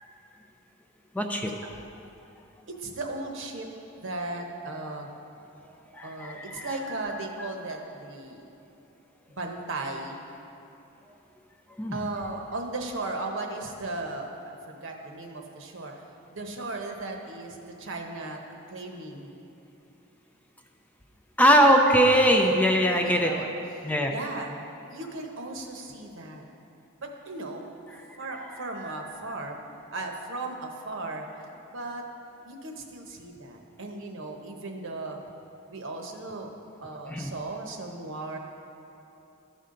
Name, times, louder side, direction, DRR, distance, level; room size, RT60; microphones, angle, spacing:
voice 1, 1.1-1.5 5.9-6.8 7.1-7.5 11.8-12.1 21.4-23.3 23.8-24.1 27.9-28.4 28.8-28.9 37.1-37.3, equal, 5° left, 3 dB, 0.4 m, -22 dB
voice 2, 2.7-3.7 4.0-5.1 6.0-8.4 9.3-10.2 11.9-15.9 16.3-18.4 18.7-19.3 23.0-23.5 24.1-24.6 24.8-26.4 27.0-27.7 28.2-29.6 29.9-32.1 32.4-35.2 35.7-36.5 36.8-38.4, right 2 dB, 65° right, 2 dB, 0.9 m, -36 dB
13.5 x 5.5 x 3.8 m, 3.0 s
head